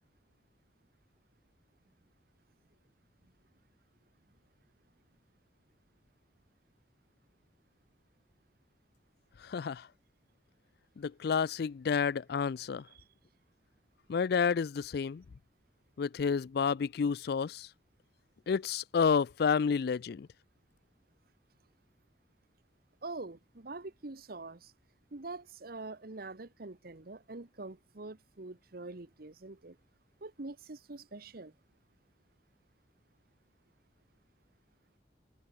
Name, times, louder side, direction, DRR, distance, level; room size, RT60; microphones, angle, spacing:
voice 1, 9.5-9.8 11.0-12.8 14.1-15.2 16.0-17.7 18.5-20.3, left 6 dB, 60° left, 0.4 m, -30 dB
voice 2, 23.0-24.7 25.1-29.8 30.2-31.5, right 3 dB, 55° right, 1.1 m, -45 dB
head